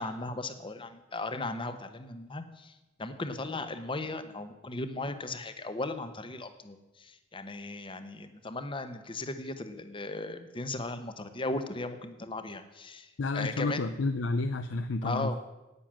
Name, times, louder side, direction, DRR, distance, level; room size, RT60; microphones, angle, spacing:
voice 1, 0.0-13.8 15.0-15.4, left 2 dB, 25° left, 10 dB, 0.9 m, -37 dB
voice 2, 13.2-15.4, left 3 dB, 85° left, 10 dB, 0.5 m, -30 dB
9.8 x 9.1 x 7.4 m, 1.0 s
head